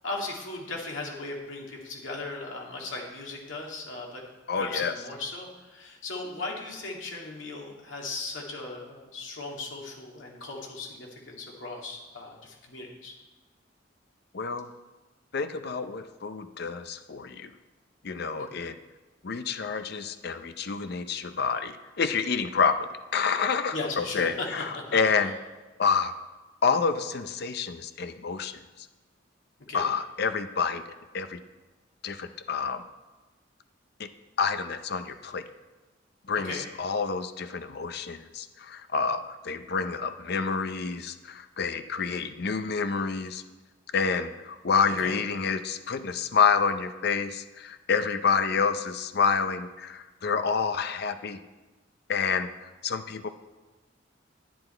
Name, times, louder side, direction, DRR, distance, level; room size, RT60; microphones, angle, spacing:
voice 1, 0.0-4.2 4.5-13.1 23.7-24.5 24.7-25.3 29.7-29.8 36.4-36.6 45.0-45.1, left 3 dB, 85° left, -1 dB, 2.2 m, -37 dB
voice 2, 4.5-4.9 14.3-14.7 15.3-17.5 18.0-18.8 19.2-25.3 25.8-26.2 26.6-28.9 29.7-30.8 31.1-31.4 32.0-32.8 34.0-34.1 34.4-35.4 36.3-43.4 43.9-51.4 52.1-52.5 52.8-53.3, left 5 dB, 55° left, 10 dB, 0.5 m, -28 dB
10.0 x 9.7 x 4.4 m, 1.2 s
head